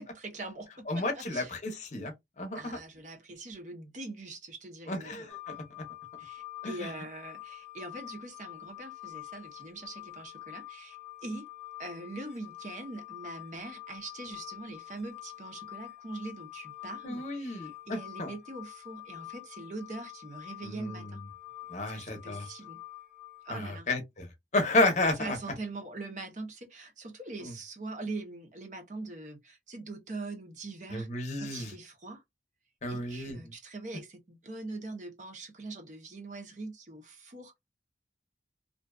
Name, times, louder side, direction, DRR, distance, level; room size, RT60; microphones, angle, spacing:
voice 1, 0.0-1.5 2.5-5.3 6.2-11.5 11.8-21.2 21.9-22.8 23.4-23.9 25.2-31.1 31.4-32.2 32.9-37.6, right 2 dB, 40° right, 0.7 m, -42 dB
voice 2, 0.9-2.8 4.9-5.8 6.6-6.9 17.0-18.3 20.6-21.2 21.7-22.5 23.5-25.4 27.4-27.5 30.9-31.7 32.8-33.5, left 2 dB, 40° left, 0.7 m, -32 dB
sound 1, 5.3-23.5, left 16 dB, ahead, 1.1 m, -47 dB
2.6 x 2.2 x 2.2 m
head